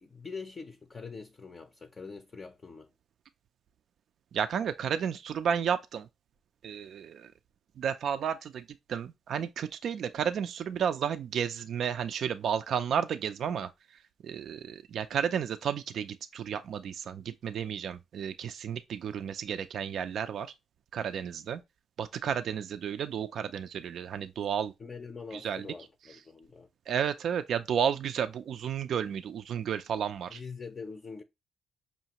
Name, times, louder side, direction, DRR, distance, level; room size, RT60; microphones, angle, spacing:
voice 1, 0.0-2.9 24.8-26.7 30.3-31.2, left 4 dB, 35° left, 0.5 m, -44 dB
voice 2, 4.3-6.1 6.6-7.3 7.8-13.7 14.2-20.5 20.9-21.6 22.0-24.7 25.3-25.7 26.9-30.4, right 8 dB, 65° right, 0.3 m, -32 dB
5.5 x 2.4 x 2.8 m
cardioid pair, 90°, 0 cm